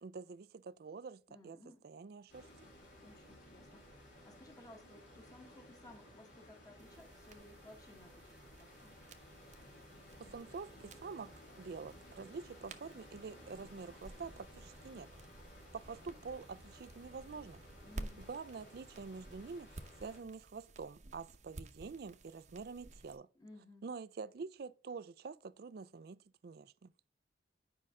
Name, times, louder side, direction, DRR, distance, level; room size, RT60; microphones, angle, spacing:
voice 1, 0.0-1.6 1.8-2.5 10.2-11.3 11.6-15.1 15.7-17.6 18.3-23.3 23.8-26.9, right 4 dB, 55° right, 0.4 m, -47 dB
voice 2, 1.3-1.9 3.0-8.9 17.8-18.3 23.3-23.9, left 1 dB, 20° left, 1.2 m, -58 dB
sound 1, 2.3-20.2, left 1 dB, 80° left, 3.0 m, -57 dB
sound 2, 6.8-23.2, right 2 dB, 40° right, 0.8 m, -54 dB
9.7 x 5.4 x 3.6 m
head